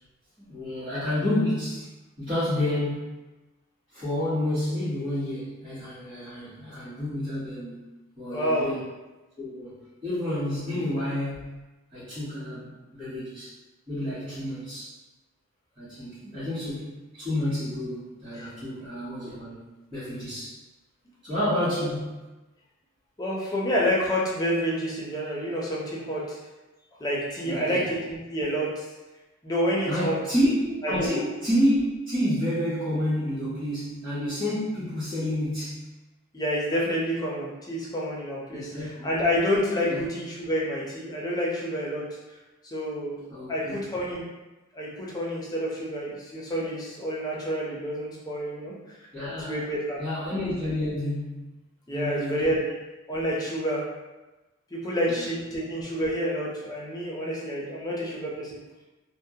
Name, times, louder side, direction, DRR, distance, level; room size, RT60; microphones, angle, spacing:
voice 1, 0.4-1.9 2.2-3.2 3.9-7.8 8.2-8.8 9.4-9.7 10.0-11.5 11.9-13.5 13.9-14.9 15.8-19.6 19.9-20.5 21.2-22.1 27.4-27.9 29.9-35.9 38.5-39.1 39.8-40.0 43.3-43.8 49.1-49.6 50.0-51.4 51.9-52.5 55.1-55.2, left 1 dB, 25° right, -14 dB, 1.0 m, -29 dB
voice 2, 8.3-8.6 14.2-14.4 18.4-18.5 21.3-21.4 21.8-21.9 23.2-26.4 27.0-28.9 29.4-30.2 30.8-31.1 36.3-42.0 42.6-43.2 43.5-44.2 44.7-49.0 49.5-50.0 51.9-52.6 53.1-53.8 54.7-58.5, equal, 20° left, -5 dB, 0.5 m, -28 dB
2.2 x 2.1 x 2.7 m, 1.1 s
head